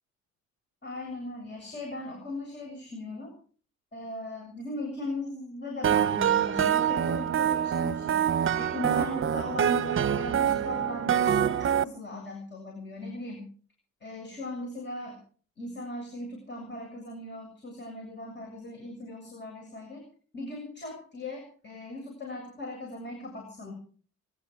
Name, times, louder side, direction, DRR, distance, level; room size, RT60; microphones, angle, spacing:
voice 1, 0.8-3.3 3.9-8.3 8.5-13.5 14.0-15.2 15.6-20.0 20.3-23.7, left 2 dB, 35° left, 2 dB, 7.5 m, -38 dB
sound 1, 5.8-11.8, right 9 dB, 45° right, 0.8 m, -25 dB
24.0 x 12.5 x 4.8 m, 0.43 s
cardioid pair, 90°, 30 cm